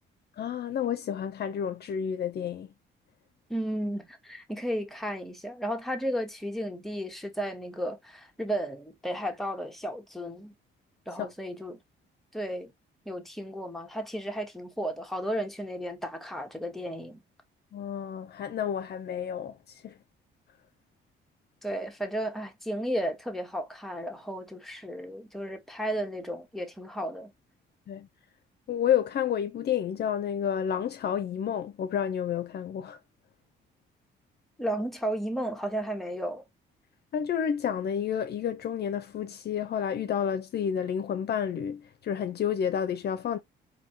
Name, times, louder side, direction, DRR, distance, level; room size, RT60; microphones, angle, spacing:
voice 1, 0.4-2.7 11.2-11.3 17.7-19.6 19.8-19.9 27.9-28.1 28.7-33.0 37.1-43.4, left 8 dB, 55° left, 0.6 m, -30 dB
voice 2, 3.5-10.5 11.1-11.8 12.3-12.7 13.1-17.2 21.6-27.3 34.6-36.4, equal, ahead, 1.1 m, -33 dB
4.3 x 2.7 x 2.7 m
cardioid pair, 90°, 20 cm